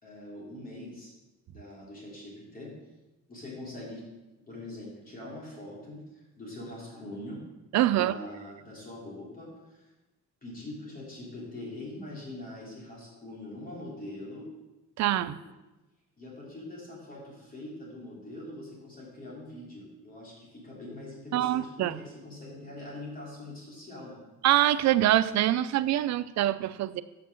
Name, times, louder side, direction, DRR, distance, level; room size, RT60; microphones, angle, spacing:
voice 1, 0.0-1.1 1.5-2.8 3.3-4.1 4.5-7.4 7.9-9.9 10.4-14.5 15.4-15.5 16.2-24.2, left 1 dB, 30° left, -5 dB, 3.2 m, -43 dB
voice 2, 7.7-8.1 15.0-15.4 21.3-22.0 24.4-27.0, right 13 dB, 65° right, 14 dB, 0.5 m, -24 dB
6.6 x 5.9 x 6.5 m, 1.1 s
cardioid pair, 110°, 30 cm